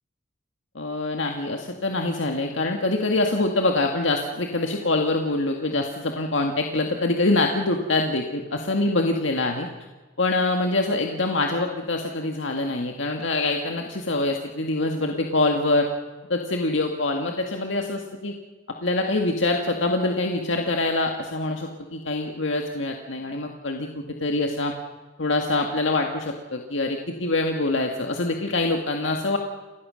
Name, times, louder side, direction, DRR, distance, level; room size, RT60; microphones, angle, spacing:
voice 1, 0.8-9.7 10.2-15.9 16.3-18.3 18.8-24.7 25.2-29.4, left 2 dB, 70° left, 3 dB, 1.9 m, -25 dB
29.0 x 17.5 x 6.5 m, 1.3 s
head